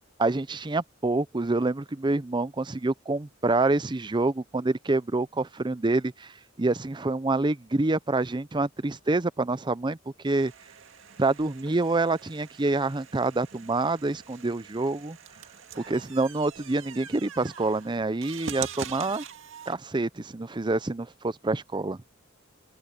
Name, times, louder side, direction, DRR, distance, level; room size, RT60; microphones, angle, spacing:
voice 1, 0.2-10.0 10.2-10.5 11.2-15.2 15.7-19.2 19.7-22.0, right 2 dB, 25° right, 0.6 m, -27 dB
sound 1, 10.3-19.8, right 7 dB, 70° right, 2.2 m, -43 dB
open air
head